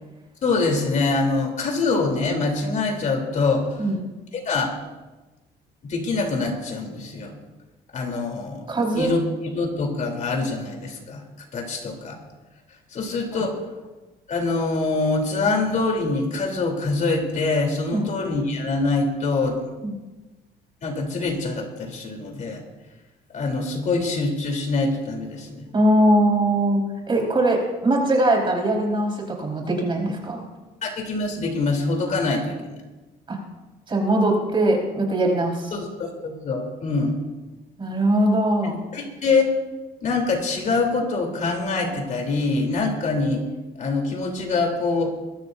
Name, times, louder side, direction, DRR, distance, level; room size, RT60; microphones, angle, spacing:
voice 1, 0.4-3.7 4.3-4.7 5.8-7.3 7.9-8.7 8.9-11.2 11.5-12.2 12.9-13.5 14.3-19.6 20.8-22.6 23.3-25.6 30.8-32.8 35.7-37.2 38.9-39.5 40.0-43.4 43.8-45.1, left 3 dB, 45° left, 1 dB, 3.6 m, -24 dB
voice 2, 8.7-9.1 13.3-13.5 17.9-18.1 19.8-19.9 25.7-26.8 27.1-30.4 33.3-33.4 33.9-35.7 37.8-38.8, right 1 dB, 30° right, 0 dB, 4.7 m, -21 dB
21.5 x 15.5 x 2.7 m, 1.2 s
cardioid pair, 110°, 17 cm